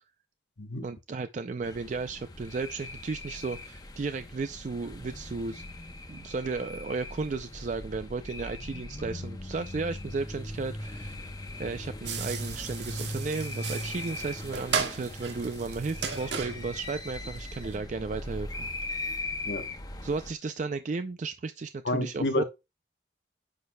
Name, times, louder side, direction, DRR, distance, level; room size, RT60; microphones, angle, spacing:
voice 1, 0.8-5.6 6.1-11.2 11.6-18.7 20.0-22.4, right 4 dB, 45° right, 0.4 m, -34 dB
sound 1, 1.6-20.3, left 1 dB, 20° left, 0.9 m, -39 dB
sound 2, 12.1-17.8, right 6 dB, 75° right, 1.7 m, -36 dB
voice 2, 21.8-22.4, left 1 dB, 70° left, 1.0 m, -29 dB
9.5 x 6.5 x 2.2 m
head